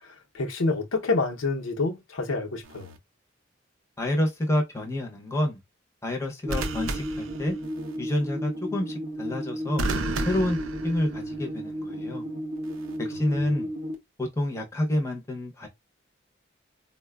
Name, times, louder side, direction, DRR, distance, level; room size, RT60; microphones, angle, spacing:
voice 1, 0.3-2.9, left 3 dB, 90° left, 0.7 m, -27 dB
sound 1, 2.6-3.0 6.5-8.0 9.8-11.4 12.6-13.0, right 2 dB, 85° right, 0.5 m, -33 dB
voice 2, 4.0-5.6 6.0-7.6 8.0-9.8 10.2-10.6 10.8-12.2 13.0-13.7 14.2-15.7, left 1 dB, 15° left, 0.6 m, -28 dB
sound 2, 6.4-13.9, equal, 35° right, 0.6 m, -34 dB
4.0 x 2.1 x 2.2 m
head